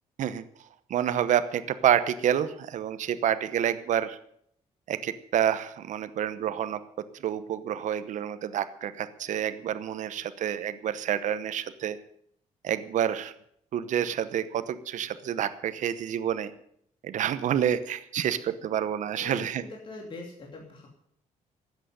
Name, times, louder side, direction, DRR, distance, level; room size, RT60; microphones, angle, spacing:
voice 1, 0.9-4.2 4.9-6.8 7.2-12.0 12.6-13.3 13.7-16.5 17.0-19.6, right 10 dB, 70° right, 12 dB, 1.0 m, -28 dB
voice 2, 19.1-20.9, left 2 dB, 40° left, 0 dB, 2.9 m, -43 dB
13.0 x 8.5 x 9.3 m, 0.68 s
cardioid pair, 120°, 13 cm